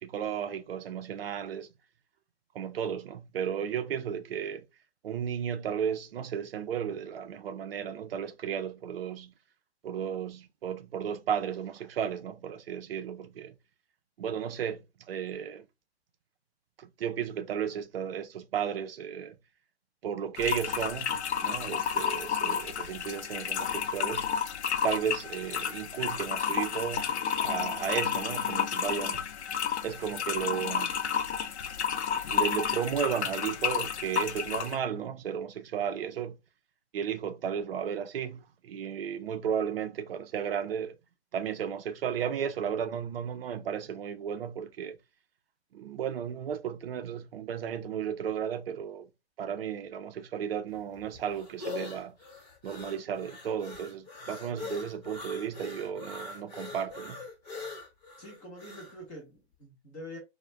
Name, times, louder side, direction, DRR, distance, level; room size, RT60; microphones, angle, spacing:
voice 1, 0.0-1.7 2.5-4.6 5.0-9.3 9.8-13.5 14.2-15.6 16.8-19.4 20.0-21.1 21.4-24.3 24.8-29.2 29.8-31.0 32.3-36.3 36.9-41.0 41.3-45.0 45.7-49.1 49.4-52.2 52.6-57.2, right 8 dB, 60° right, 0.5 m, -34 dB
sound 1, 20.4-34.8, left 7 dB, 80° left, 0.5 m, -31 dB
sound 2, 50.7-59.0, left 3 dB, 40° left, 1.0 m, -42 dB
voice 2, 58.2-60.2, left 1 dB, 10° left, 0.6 m, -45 dB
2.3 x 2.1 x 3.1 m
hypercardioid pair, 155°, 33 cm